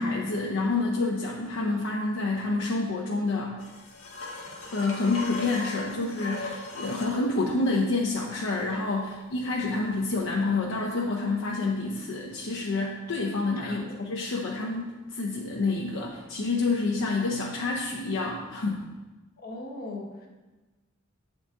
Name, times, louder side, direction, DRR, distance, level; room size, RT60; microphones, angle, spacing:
voice 1, 0.0-3.6 4.7-18.9, left 3 dB, 65° left, -2 dB, 0.6 m, -28 dB
sound 1, 3.6-7.2 10.1-10.2, left 2 dB, 90° left, 1.1 m, -38 dB
voice 2, 13.6-14.0 19.4-20.3, left 2 dB, 45° left, 0 dB, 1.0 m, -39 dB
8.1 x 3.9 x 3.6 m, 1.2 s
head